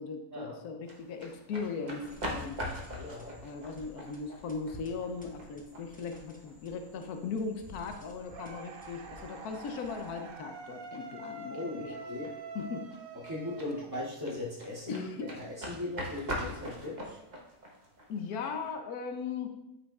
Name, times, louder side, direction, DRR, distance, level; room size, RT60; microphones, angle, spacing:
voice 1, 0.0-2.6 3.4-12.0 12.5-12.9 14.9-15.3 18.1-19.5, left 5 dB, 85° left, 5 dB, 1.2 m, -38 dB
sound 1, 0.8-18.7, equal, 35° right, 1.0 m, -44 dB
sound 2, 2.0-10.4, left 1 dB, 10° left, 0.5 m, -52 dB
voice 2, 3.0-3.4 11.5-12.3 13.2-17.2, left 2 dB, 15° right, -8 dB, 2.4 m, -39 dB
sound 3, 8.3-14.4, right 3 dB, 55° right, 0.6 m, -45 dB
8.6 x 5.5 x 2.3 m, 0.88 s
omnidirectional pair, 1.6 m